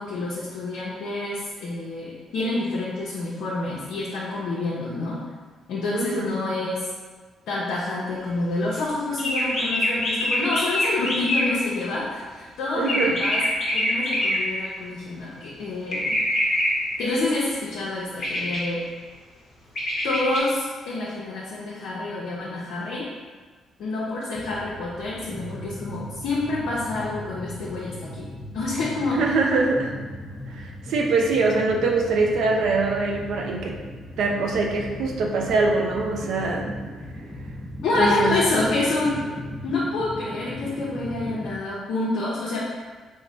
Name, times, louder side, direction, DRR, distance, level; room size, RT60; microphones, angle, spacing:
voice 1, 0.0-5.2 5.7-6.9 7.5-13.4 13.7-16.2 17.0-18.9 20.0-23.1 23.8-29.2 37.8-39.2 39.6-42.6, left 2 dB, 80° left, -6 dB, 0.6 m, -27 dB
voice 2, 5.9-6.3 12.8-13.2 29.1-30.0 30.5-33.8 34.2-36.7 38.0-38.4, right 3 dB, 80° right, 0 dB, 0.4 m, -23 dB
sound 1, 9.2-11.8 12.9-14.7 15.9-17.0 18.2-18.7 19.8-20.4, left 1 dB, 50° left, 0.9 m, -25 dB
sound 2, 24.3-41.5, equal, 5° right, 0.7 m, -37 dB
3.1 x 2.1 x 3.9 m, 1.4 s
cardioid pair, 90°, 0 cm